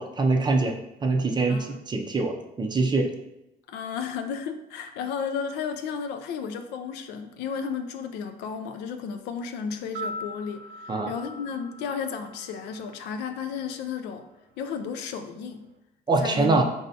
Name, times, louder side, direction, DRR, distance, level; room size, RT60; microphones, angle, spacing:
voice 1, 0.0-3.1 10.9-11.1 16.1-16.6, right 3 dB, 25° right, 3 dB, 0.4 m, -24 dB
voice 2, 1.5-1.8 3.7-14.2 14.6-15.6 16.2-16.6, left 6 dB, 85° left, 7 dB, 0.4 m, -33 dB
sound 1, 9.8-14.0 14.2-14.3, equal, 75° right, 0.5 m, -41 dB
4.2 x 3.3 x 2.7 m, 0.90 s
cardioid pair, 110°, 17 cm